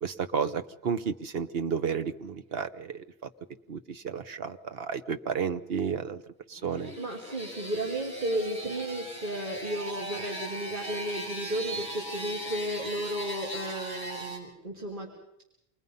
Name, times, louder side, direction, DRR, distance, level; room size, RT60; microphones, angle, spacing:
voice 1, 0.0-3.0 3.7-6.2 6.5-6.9, right 6 dB, 70° right, 9 dB, 1.2 m, -32 dB
sound 1, 6.6-14.4, right 1 dB, 5° right, 5.9 m, -39 dB
voice 2, 7.0-15.1, right 1 dB, 50° right, -2 dB, 3.1 m, -33 dB
27.5 x 21.5 x 5.5 m, 0.81 s
omnidirectional pair, 1.0 m